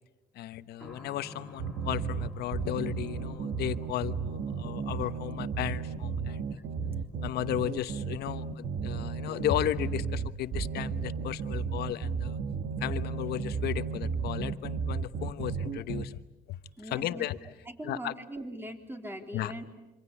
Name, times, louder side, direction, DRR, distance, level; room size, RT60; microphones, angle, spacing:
voice 1, 0.3-6.4 7.2-12.4 12.8-16.2 16.5-16.6 16.8-17.4 17.8-18.1 19.3-19.5, left 13 dB, 70° left, 13 dB, 1.1 m, -34 dB
sound 1, 0.8-15.2 15.5-15.6 16.5-16.7, equal, 5° left, 3.4 m, -56 dB
sound 2, 1.6-16.1, right 5 dB, 65° right, 1.4 m, -34 dB
voice 2, 16.8-17.3 17.7-19.7, right 1 dB, 15° right, 5 dB, 3.6 m, -40 dB
27.0 x 25.0 x 8.5 m, 1.1 s
cardioid pair, 110°, 17 cm